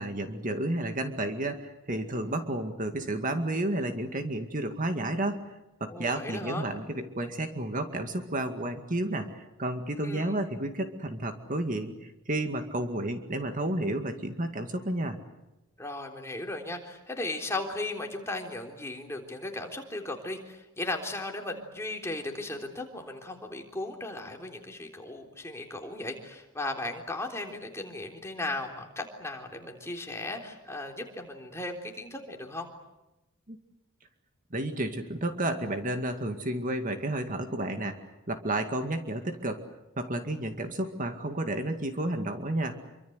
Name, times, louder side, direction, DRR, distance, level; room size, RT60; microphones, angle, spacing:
voice 1, 0.0-5.4 5.8-15.2 33.5-33.6 34.5-39.6 40.0-42.8, right 1 dB, 40° right, 6 dB, 2.1 m, -31 dB
voice 2, 5.9-6.7 9.9-10.4 15.8-32.7, left 2 dB, 15° left, 2 dB, 3.7 m, -36 dB
27.5 x 25.0 x 8.0 m, 0.96 s
head